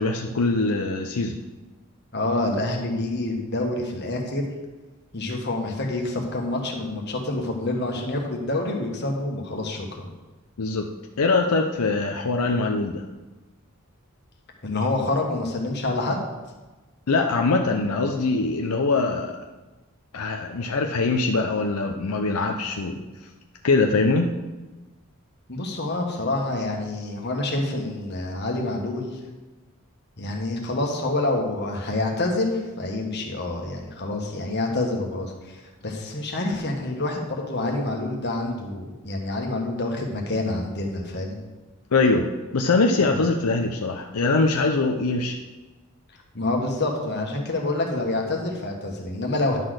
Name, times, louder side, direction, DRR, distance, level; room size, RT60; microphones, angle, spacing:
voice 1, 0.0-1.4 10.6-10.9 11.2-13.0 17.1-19.4 20.1-23.0 23.6-24.3 41.9-42.3 42.5-45.4, left 3 dB, 85° left, 3 dB, 0.6 m, -22 dB
voice 2, 2.1-4.5 5.1-10.1 14.6-16.2 25.5-29.2 30.2-41.4 43.0-43.2 46.3-49.6, left 2 dB, 50° left, 1 dB, 1.5 m, -27 dB
10.5 x 4.0 x 6.4 m, 1.2 s
head